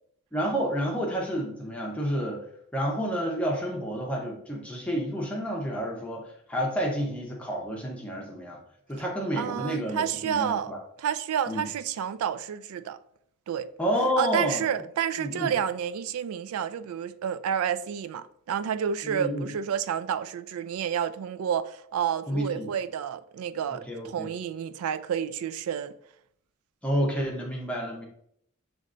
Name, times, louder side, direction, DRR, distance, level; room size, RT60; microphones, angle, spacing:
voice 1, 0.3-2.4 2.7-8.6 8.9-10.8 11.5-11.7 13.8-14.6 15.2-15.5 19.0-19.5 22.3-22.7 23.9-24.3 26.8-28.0, equal, 5° left, 0.8 m, -29 dB
voice 2, 9.4-10.7 11.0-13.0 13.5-13.7 14.2-26.0, right 8 dB, 90° right, 0.3 m, -30 dB
6.3 x 3.2 x 2.5 m
head